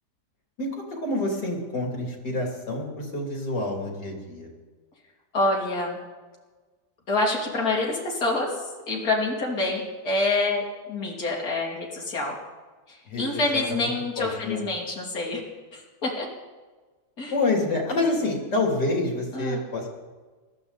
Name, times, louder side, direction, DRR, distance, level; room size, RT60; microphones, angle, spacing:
voice 1, 0.6-4.5 13.1-13.2 13.5-13.9 14.2-14.6 17.3-19.9, left 2 dB, 80° left, 0 dB, 3.7 m, -27 dB
voice 2, 5.3-6.0 7.1-12.3 12.9-15.4 15.7-16.3 17.2-17.3 19.3-19.6, left 2 dB, 60° left, -3 dB, 3.1 m, -27 dB
20.0 x 13.5 x 4.1 m, 1.3 s
omnidirectional pair, 1.8 m